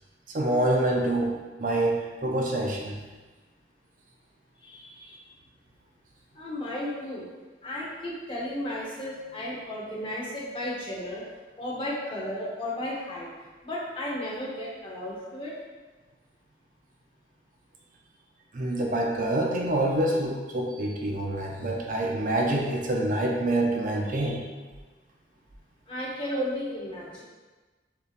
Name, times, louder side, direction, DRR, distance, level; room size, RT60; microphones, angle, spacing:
voice 1, 0.3-3.0 18.5-24.4, right 1 dB, 45° right, 0 dB, 0.5 m, -26 dB
voice 2, 4.6-5.2 6.3-7.2 7.6-11.2 11.6-13.3 13.6-15.5 25.9-27.2, left 1 dB, 30° left, -5 dB, 0.9 m, -34 dB
6.7 x 2.8 x 2.4 m, 1.3 s
head